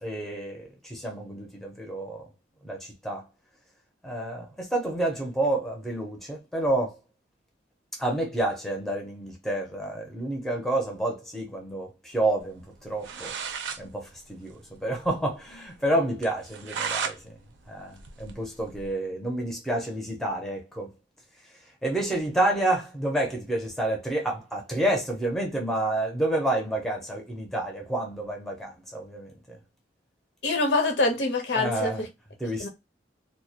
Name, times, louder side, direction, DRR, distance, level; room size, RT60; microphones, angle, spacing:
voice 1, 0.0-2.3 2.6-3.2 4.0-7.0 8.0-13.3 13.8-17.4 17.7-20.9 21.8-29.6 31.5-32.0 32.4-32.7, right 1 dB, ahead, 0.5 m, -29 dB
sound 1, 12.8-12.9 13.0-13.8 14.2-14.3 14.5-14.6 15.0-15.1 15.5-15.6 16.2-17.2 17.6-18.9, right 6 dB, 85° right, 0.4 m, -34 dB
voice 2, 30.4-32.1 32.6-32.7, left 2 dB, 70° left, 0.7 m, -25 dB
2.2 x 2.1 x 2.7 m
head